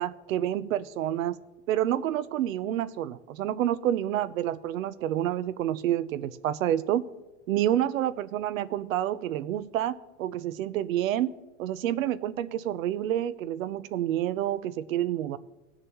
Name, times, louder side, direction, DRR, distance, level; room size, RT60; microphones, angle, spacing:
voice 1, 0.0-1.4 1.7-7.0 7.5-9.9 10.2-11.3 11.6-15.4, right 12 dB, 90° right, 17 dB, 0.7 m, -28 dB
19.5 x 6.7 x 3.0 m, 1.1 s
supercardioid pair, 175°, 39 cm